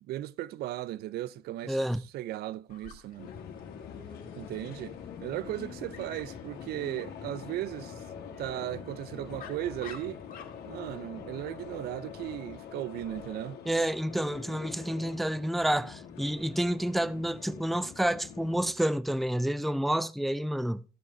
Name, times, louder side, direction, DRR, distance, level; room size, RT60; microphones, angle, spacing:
voice 1, 0.1-1.8 2.1-3.3 4.4-4.9 5.2-8.0 8.4-10.2 10.7-13.6, right 14 dB, 70° right, 0.5 m, -36 dB
voice 2, 1.7-2.0 13.7-20.8, right 1 dB, ahead, 0.3 m, -29 dB
Dog, 2.7-13.3, left 7 dB, 55° left, 2.4 m, -54 dB
sound 1, 3.2-18.7, left 7 dB, 75° left, 2.0 m, -44 dB
14.0 x 5.5 x 4.2 m
cardioid pair, 110°, 17 cm